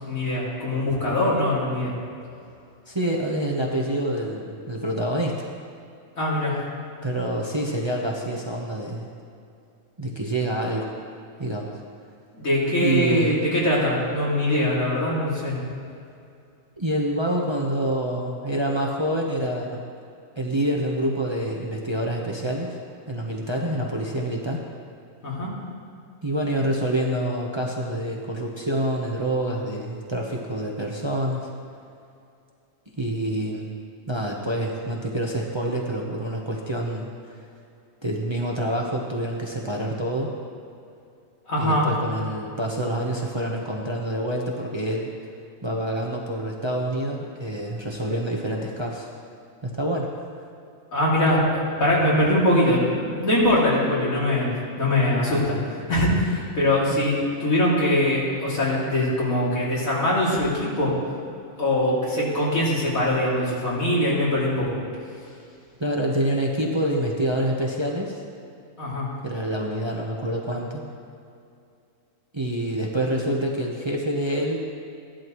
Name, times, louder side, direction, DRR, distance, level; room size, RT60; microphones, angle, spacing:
voice 1, 0.0-1.9 6.2-6.6 12.4-15.6 25.2-25.5 41.5-41.9 50.9-60.9 61.6-64.7 68.8-69.1, left 1 dB, 80° left, -6 dB, 3.2 m, -22 dB
voice 2, 2.9-5.5 7.0-9.1 10.0-10.9 11.4-11.7 12.8-13.4 16.8-19.8 20.4-22.7 23.1-24.7 26.2-31.5 33.0-33.7 34.1-37.1 38.0-40.3 41.6-45.1 45.6-49.1 49.6-50.1 56.9-57.0 65.8-68.2 69.2-70.8 72.3-74.6, right 1 dB, 20° right, -1 dB, 0.9 m, -27 dB
15.5 x 11.5 x 3.1 m, 2.5 s
omnidirectional pair, 1.4 m